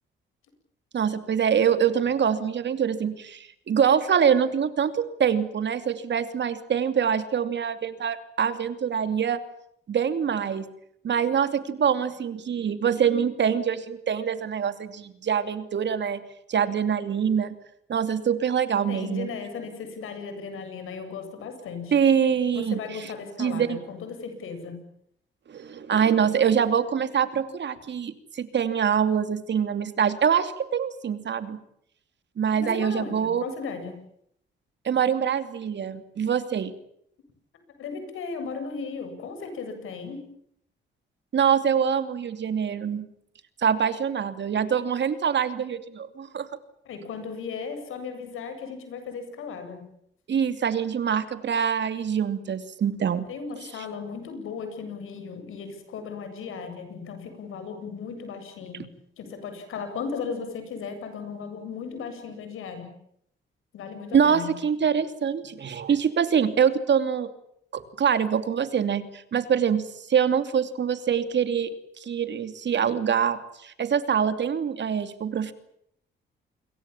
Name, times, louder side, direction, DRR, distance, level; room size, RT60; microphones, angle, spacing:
voice 1, 0.9-9.4 9.9-10.7 11.0-16.2 16.5-17.5 17.9-19.3 21.9-22.8 23.4-23.8 25.5-31.6 32.4-33.4 34.8-36.7 41.3-43.1 43.6-46.5 50.3-53.3 64.1-67.3 67.7-71.7 72.0-75.5, right 7 dB, 60° right, 10 dB, 2.8 m, -24 dB
voice 2, 18.9-21.9 22.5-24.8 32.5-33.9 37.8-40.2 46.8-49.8 53.3-58.9 59.2-62.9 63.7-64.5, left 5 dB, 85° left, 8 dB, 7.8 m, -36 dB
28.5 x 23.0 x 7.4 m, 0.72 s
cardioid pair, 75°, 20 cm